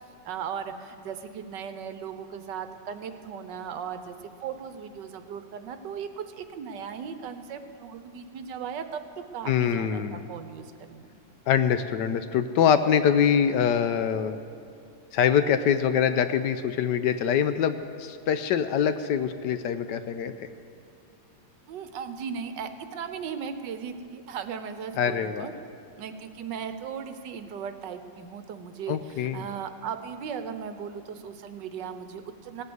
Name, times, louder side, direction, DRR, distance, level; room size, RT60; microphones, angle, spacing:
voice 1, 0.2-4.1 4.4-9.0 9.3-11.1 21.7-25.5 26.0-32.6, right 7 dB, 75° right, 9 dB, 1.4 m, -37 dB
voice 2, 9.5-10.3 11.5-14.4 15.1-20.3 25.0-25.5 28.9-29.5, left 8 dB, 75° left, 10 dB, 1.2 m, -24 dB
17.5 x 8.0 x 7.9 m, 2.7 s
omnidirectional pair, 2.0 m